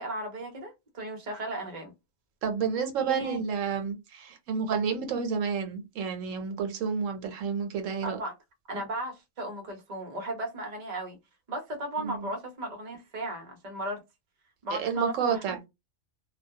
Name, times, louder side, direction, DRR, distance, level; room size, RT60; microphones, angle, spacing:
voice 1, 0.0-1.9 3.0-3.4 8.0-8.3 8.7-11.2 11.5-14.0 14.6-15.4, right 1 dB, 40° right, 0.7 m, -35 dB
voice 2, 2.4-8.2 12.0-12.3 14.7-15.6, right 6 dB, 75° right, 0.9 m, -30 dB
2.3 x 2.2 x 2.6 m
omnidirectional pair, 1.4 m